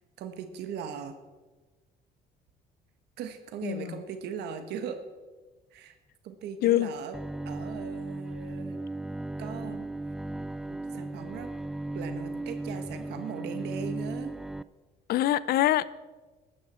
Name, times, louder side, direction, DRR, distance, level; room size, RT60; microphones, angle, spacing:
voice 1, 0.2-1.2 3.2-5.0 5.7-6.0 6.2-7.2 7.4-8.8 9.4-9.9 10.7-11.5 11.9-14.3, right 7 dB, 80° right, 8 dB, 1.3 m, -39 dB
voice 2, 3.6-3.9 6.6-6.9 15.1-15.9, left 14 dB, 65° left, 19 dB, 0.6 m, -24 dB
Bowed string instrument, 7.1-14.6, right 2 dB, ahead, 0.3 m, -36 dB
15.0 x 12.0 x 4.3 m, 1.3 s
cardioid pair, 110°, 17 cm